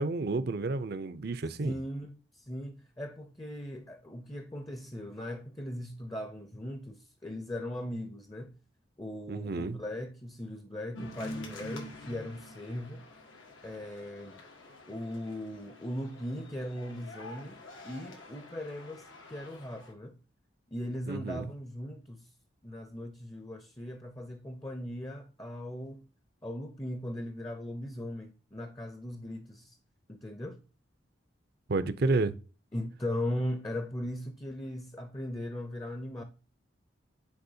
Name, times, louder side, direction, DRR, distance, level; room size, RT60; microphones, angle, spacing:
voice 1, 0.0-1.7 9.3-9.8 21.1-21.5 31.7-32.3, right 3 dB, 55° right, 0.5 m, -30 dB
voice 2, 1.6-8.5 9.0-13.0 13.6-14.4 14.9-20.1 20.7-22.3 22.6-26.0 26.4-29.8 30.1-30.6 32.7-36.2, left 1 dB, 20° left, 0.6 m, -39 dB
sound 1, 10.9-19.9, left 1 dB, 85° left, 1.6 m, -47 dB
9.5 x 4.2 x 2.7 m
head